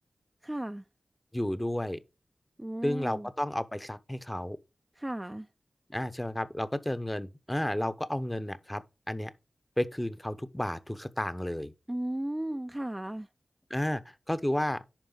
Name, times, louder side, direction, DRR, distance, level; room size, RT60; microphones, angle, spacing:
voice 1, 0.4-0.8 2.6-3.3 5.0-5.5 11.9-13.3, right 1 dB, 15° right, 0.4 m, -35 dB
voice 2, 1.3-2.0 2.8-4.6 5.9-9.3 9.8-11.7 13.7-14.0 14.3-14.8, left 1 dB, 10° left, 0.8 m, -32 dB
10.5 x 4.8 x 3.9 m
wide cardioid pair, 75°, 0 cm